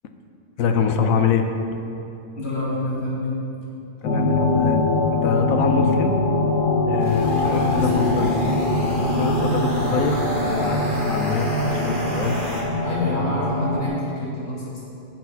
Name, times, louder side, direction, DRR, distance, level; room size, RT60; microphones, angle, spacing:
voice 1, 0.6-1.5 4.0-4.8 5.2-6.1 6.9-8.7 9.1-12.4 13.2-13.3, left 5 dB, 60° left, 6 dB, 1.1 m, -25 dB
voice 2, 2.3-3.3 7.4-8.3 12.8-14.8, left 1 dB, 40° left, -7 dB, 2.7 m, -28 dB
sound 1, 4.0-13.9, left 2 dB, 80° left, 1.7 m, -22 dB
sound 2, 7.0-12.6, right 1 dB, 30° right, 1.8 m, -31 dB
9.1 x 8.0 x 5.8 m, 2.8 s
omnidirectional pair, 1.8 m